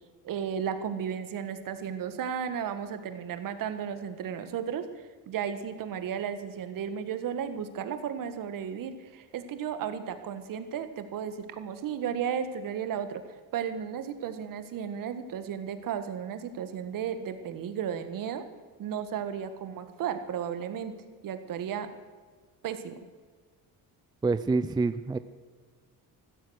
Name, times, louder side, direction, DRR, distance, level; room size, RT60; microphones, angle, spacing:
voice 1, 0.2-4.9 5.3-13.2 13.5-18.4 18.8-20.9 21.2-21.9 22.6-23.0, right 8 dB, 60° right, 10 dB, 1.6 m, -34 dB
voice 2, 24.2-25.2, right 3 dB, 10° right, 12 dB, 0.5 m, -26 dB
14.5 x 13.5 x 6.4 m, 1.5 s
cardioid pair, 110°, 37 cm